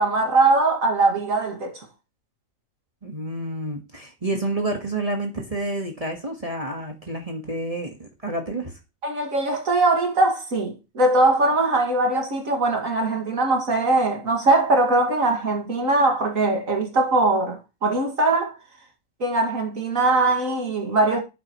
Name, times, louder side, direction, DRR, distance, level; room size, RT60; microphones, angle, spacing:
voice 1, 0.0-1.9 9.0-18.6 19.2-21.2, right 2 dB, 85° right, 2.6 m, -21 dB
voice 2, 3.0-8.7, right 2 dB, 30° right, 1.6 m, -29 dB
11.5 x 8.4 x 3.1 m
omnidirectional pair, 1.4 m